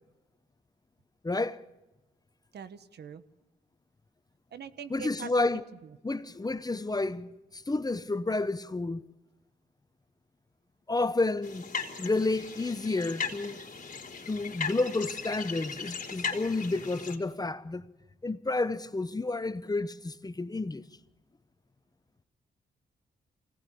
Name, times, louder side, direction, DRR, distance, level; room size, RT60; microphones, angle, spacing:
voice 1, 1.2-1.6 4.9-5.6 6.0-9.0 10.9-11.6 12.0-13.6 14.3-17.9 18.2-20.8, left 2 dB, 20° left, 1.0 m, -30 dB
voice 2, 2.5-3.2 4.5-5.5, right 7 dB, 65° right, 1.2 m, -42 dB
sound 1, 11.4-17.2, left 6 dB, 45° left, 3.6 m, -38 dB
24.5 x 18.0 x 8.6 m
cardioid pair, 60°, 18 cm